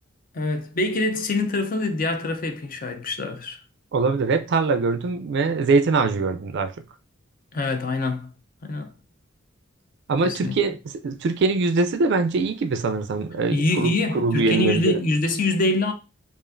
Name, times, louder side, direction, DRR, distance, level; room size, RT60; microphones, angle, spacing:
voice 1, 0.3-3.6 7.5-8.3 8.6-8.9 10.2-10.6 13.5-15.9, left 2 dB, 40° left, 0.5 m, -24 dB
voice 2, 3.9-6.7 10.1-10.8 11.0-15.0, right 3 dB, 55° right, 0.4 m, -22 dB
5.0 x 2.5 x 2.5 m
head